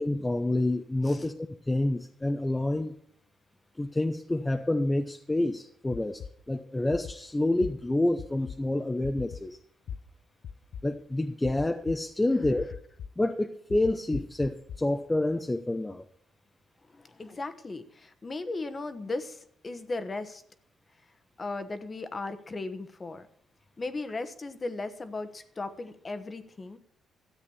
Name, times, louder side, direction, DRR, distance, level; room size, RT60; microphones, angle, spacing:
voice 1, 0.0-1.3 1.7-2.9 3.8-9.6 10.8-12.7 13.2-16.0, left 1 dB, 15° left, 5 dB, 0.8 m, -28 dB
sound 1, 5.9-6.3 6.9-7.1 7.6-7.7 8.2-8.6 9.0-9.4 9.9-10.0 10.4-10.8 11.4-12.0 12.4-13.1 13.7-14.8, left 7 dB, 65° left, 0.7 m, -39 dB
voice 2, 16.8-20.4 21.4-23.3 23.8-26.8, left 3 dB, 30° left, 11 dB, 1.2 m, -37 dB
13.5 x 8.1 x 7.1 m, 0.64 s
cardioid pair, 90°, 0 cm